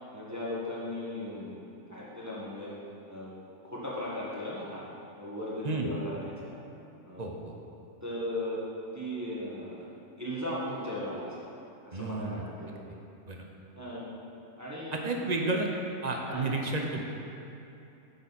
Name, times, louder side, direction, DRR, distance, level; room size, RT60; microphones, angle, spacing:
voice 1, 0.1-2.7 3.1-4.9 5.2-6.5 7.0-7.3 8.0-8.6 8.9-9.9 10.2-11.3 11.8-12.9 13.7-14.1 14.6-15.2 16.2-16.5, left 1 dB, 10° right, -7 dB, 1.3 m, -37 dB
voice 2, 7.2-7.5 11.9-12.4 13.3-13.4 15.0-15.7 16.0-17.0, right 3 dB, 35° right, 1 dB, 0.7 m, -31 dB
9.9 x 7.1 x 4.1 m, 2.8 s
omnidirectional pair, 1.6 m